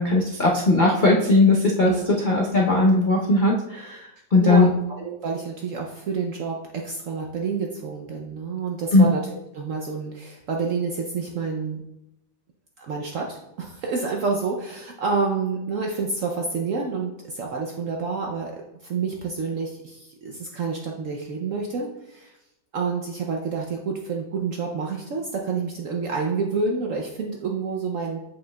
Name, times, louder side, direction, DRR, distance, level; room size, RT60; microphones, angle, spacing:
voice 1, 0.0-4.7 8.9-9.0, left 2 dB, 80° left, -3 dB, 0.4 m, -19 dB
voice 2, 1.8-2.2 4.4-4.7 5.0-9.2 9.5-11.8 12.8-18.6 18.8-22.3 22.7-28.2, right 4 dB, 70° right, 1 dB, 0.7 m, -28 dB
7.5 x 5.6 x 2.2 m, 0.87 s
omnidirectional pair, 2.0 m